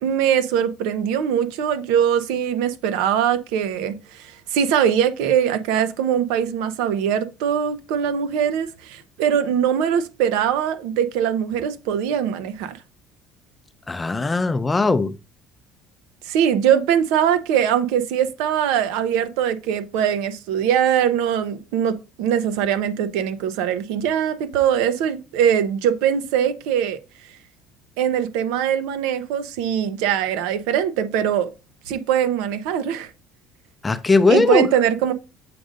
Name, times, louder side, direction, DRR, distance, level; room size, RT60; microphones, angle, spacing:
voice 1, 0.0-12.8 16.2-27.0 28.0-31.5 31.9-33.1 34.3-35.1, right 9 dB, 85° right, 0.8 m, -22 dB
voice 2, 13.9-15.1 33.8-34.6, left 3 dB, 15° left, 0.5 m, -18 dB
7.7 x 2.6 x 5.1 m
cardioid pair, 115°, 0 cm